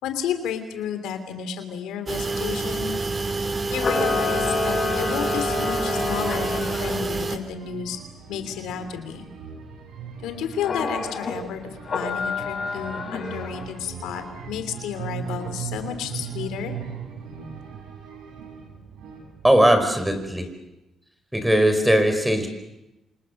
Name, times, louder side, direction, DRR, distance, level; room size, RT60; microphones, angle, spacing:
voice 1, 0.0-2.9 3.7-8.0 8.3-9.2 10.2-16.7, left 8 dB, 90° left, 8 dB, 3.1 m, -32 dB
sound 1, 2.1-7.4, right 3 dB, 35° right, 2.6 m, -28 dB
Camera, 3.7-7.0 10.6-11.3 11.8-13.7, left 3 dB, 45° left, 6.8 m, -28 dB
sound 2, 4.3-20.4, right 7 dB, 80° right, 6.7 m, -39 dB
voice 2, 19.4-20.5 21.3-22.5, right 1 dB, 5° right, 7 dB, 4.9 m, -19 dB
28.5 x 26.0 x 6.7 m, 0.98 s
cardioid pair, 90°, 0 cm